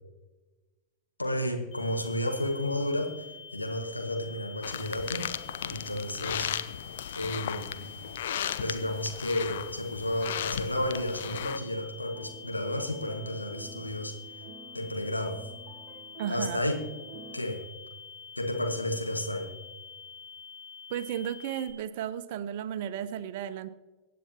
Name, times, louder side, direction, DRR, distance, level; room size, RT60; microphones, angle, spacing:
voice 1, 1.2-3.2 3.5-5.3 5.6-6.5 7.1-7.7 8.6-14.1 14.7-15.4 16.3-16.8 17.3-17.6 18.4-19.5, left 1 dB, 85° left, 3 dB, 1.6 m, -32 dB
sound 1, 1.7-21.7, left 6 dB, 20° left, 2.5 m, -47 dB
sound 2, 4.6-11.6, left 10 dB, 60° left, 0.5 m, -36 dB
sound 3, 12.1-17.4, right 5 dB, 10° right, 2.0 m, -50 dB
voice 2, 16.2-16.6 20.9-23.7, right 10 dB, 50° right, 13 dB, 0.7 m, -34 dB
24.0 x 9.3 x 2.9 m, 1.2 s
figure-of-eight pair, 90°, 0 cm